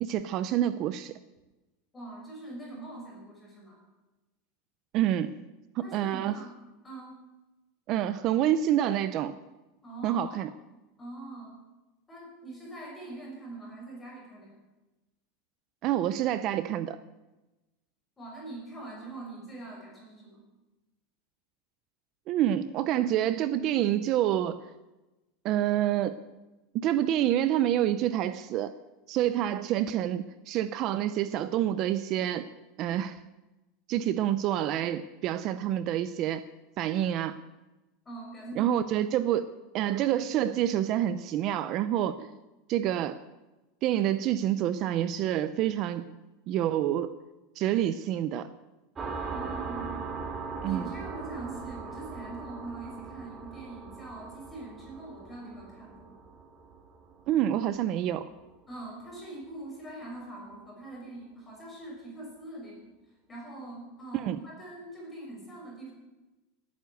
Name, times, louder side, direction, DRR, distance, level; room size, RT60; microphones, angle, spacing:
voice 1, 0.0-1.1 4.9-5.4 5.8-6.4 7.9-9.4 10.0-10.5 15.8-17.0 22.3-24.6 25.4-26.2 26.7-28.7 29.1-32.5 32.8-33.2 33.9-36.4 36.8-37.4 38.6-39.5 39.7-42.3 42.7-43.2 43.8-46.2 46.5-47.2 47.6-48.5 50.6-50.8 57.3-58.3 64.1-64.4, right 11 dB, 35° right, 13 dB, 0.5 m, -27 dB
voice 2, 1.9-3.8 5.8-6.5 6.8-7.1 9.8-10.4 11.0-11.6 12.1-14.5 18.2-20.4 38.0-38.8 39.9-40.0 49.3-50.1 50.6-56.1 58.7-62.9 63.3-65.9, right 2 dB, 10° left, -2 dB, 5.8 m, -43 dB
sound 1, 49.0-58.2, right 4 dB, 15° right, 1.8 m, -40 dB
18.0 x 9.4 x 7.9 m, 1.1 s
supercardioid pair, 170°, 0 cm